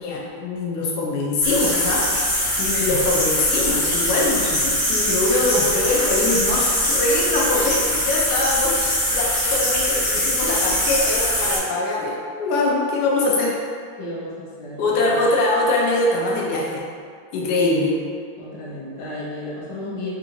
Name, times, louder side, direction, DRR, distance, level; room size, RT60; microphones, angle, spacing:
voice 1, 0.0-2.1 2.6-13.6 14.8-16.8 17.3-17.9, left 2 dB, 85° left, -3 dB, 0.9 m, -23 dB
sound 1, 1.4-11.6, left 1 dB, 50° left, 1.0 m, -22 dB
voice 2, 14.0-15.0 17.4-17.8 18.4-20.1, left 1 dB, 65° left, -6 dB, 1.4 m, -33 dB
3.4 x 2.5 x 2.9 m, 2.1 s
omnidirectional pair, 2.3 m